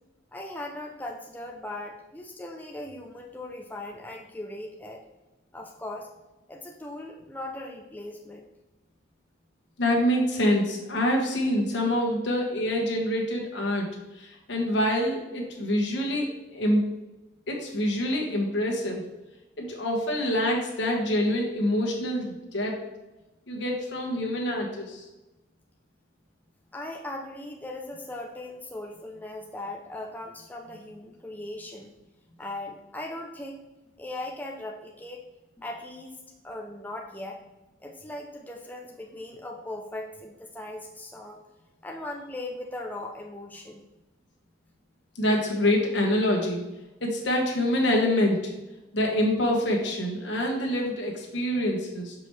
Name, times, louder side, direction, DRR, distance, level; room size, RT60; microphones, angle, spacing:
voice 1, 0.3-5.0 5.5-6.1 6.5-8.5 26.7-31.9 32.4-33.6 34.0-35.2 35.6-37.4 37.8-41.4 41.8-43.8, left 1 dB, 10° left, 0 dB, 0.4 m, -39 dB
voice 2, 9.8-13.9 14.2-16.8 17.5-19.0 19.6-22.8 23.5-25.0 45.2-46.6 47.0-48.5 48.9-52.1, left 1 dB, 75° left, 0 dB, 1.3 m, -26 dB
6.0 x 4.9 x 3.2 m, 1.0 s
head